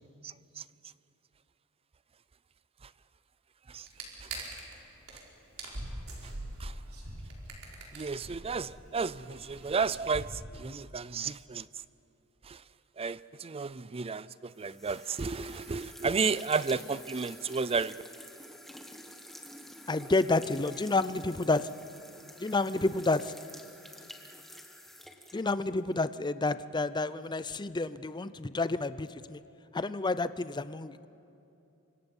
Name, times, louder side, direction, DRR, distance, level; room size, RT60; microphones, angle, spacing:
sound 1, 3.9-4.8 5.1-5.2 5.5-10.3, right 2 dB, 70° right, 4.5 m, -43 dB
voice 1, 7.9-11.6 12.5-12.6 13.0-17.9, right 5 dB, 25° right, 0.4 m, -32 dB
sound 2, 14.6-26.0, left 1 dB, ahead, 1.4 m, -49 dB
voice 2, 19.9-21.7 22.4-23.3 25.3-29.4 29.7-31.1, left 3 dB, 20° left, 0.6 m, -30 dB
29.0 x 25.0 x 5.5 m
head